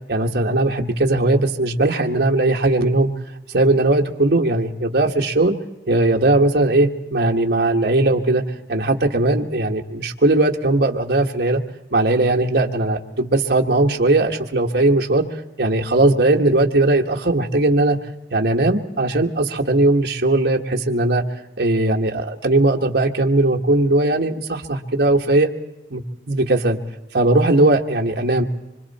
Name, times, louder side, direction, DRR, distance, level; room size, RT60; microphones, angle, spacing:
voice 1, 0.1-3.1 3.5-5.5 5.9-8.4 8.7-11.6 11.9-15.2 15.6-18.0 18.3-21.2 21.6-25.5 25.9-26.0 26.3-26.8 27.1-28.4, right 2 dB, 65° right, 2 dB, 1.5 m, -18 dB
25.5 x 25.0 x 4.3 m, 0.95 s
head